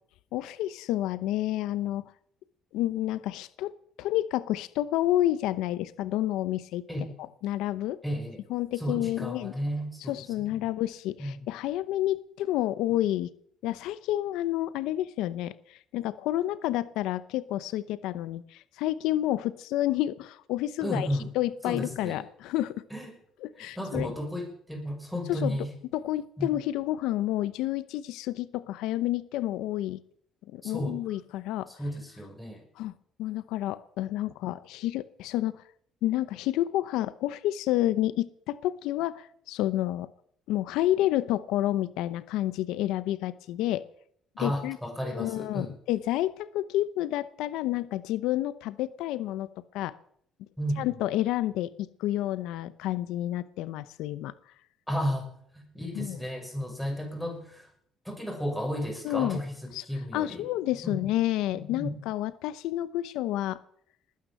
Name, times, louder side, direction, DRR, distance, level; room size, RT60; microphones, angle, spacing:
voice 1, 0.3-2.1 2.7-3.7 4.0-6.9 7.4-8.0 8.5-9.5 10.1-13.3 13.6-21.1 21.3-22.8 23.4-24.2 25.3-25.6 25.9-30.0 30.5-31.7 32.8-32.9 33.2-35.6 36.0-40.1 40.5-43.8 44.4-44.8 45.0-49.5 49.7-49.9 50.8-54.3 55.9-56.2 59.0-59.4 59.7-59.8 60.1-63.6, left 14 dB, 85° left, 16 dB, 0.7 m, -29 dB
voice 2, 8.0-8.4 8.8-10.6 11.2-11.3 20.8-21.3 21.7-22.2 22.9-23.1 23.6-25.7 26.4-26.5 30.6-31.0 31.7-32.6 44.4-45.7 50.6-50.8 54.9-57.7 58.1-60.4 60.8-61.0 61.5-62.0, equal, ahead, 4 dB, 5.8 m, -33 dB
20.5 x 9.4 x 7.6 m, 0.66 s
cardioid pair, 95°, 0 cm